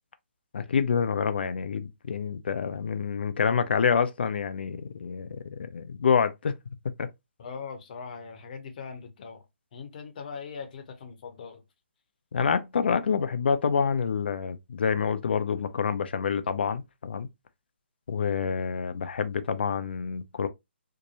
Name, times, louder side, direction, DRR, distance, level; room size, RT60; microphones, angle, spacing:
voice 1, 0.5-6.5 7.0-7.1 12.3-17.3 18.1-20.5, left 6 dB, 60° left, 0.4 m, -27 dB
voice 2, 7.4-9.4 9.7-11.6, left 5 dB, 45° left, 0.7 m, -40 dB
2.7 x 2.2 x 2.8 m
figure-of-eight pair, 140°, 6 cm